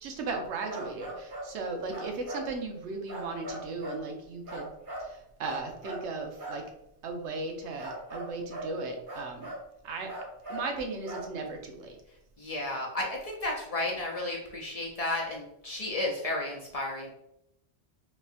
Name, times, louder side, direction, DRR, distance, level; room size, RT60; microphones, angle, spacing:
voice 1, 0.0-4.7 5.0-6.6 7.0-9.5 9.8-10.1 10.5-12.0, right 3 dB, 85° right, 3 dB, 1.0 m, -36 dB
sound 1, 0.7-1.5 1.9-2.5 3.1-4.0 4.5-5.1 5.4-6.1 6.4-6.6 7.8-8.7 9.1-9.6 10.1-10.7 11.1-11.3, right 1 dB, 50° right, 1.4 m, -39 dB
voice 2, 12.4-17.1, left 2 dB, 40° left, -2 dB, 0.6 m, -33 dB
4.0 x 2.6 x 2.5 m, 0.80 s
omnidirectional pair, 1.1 m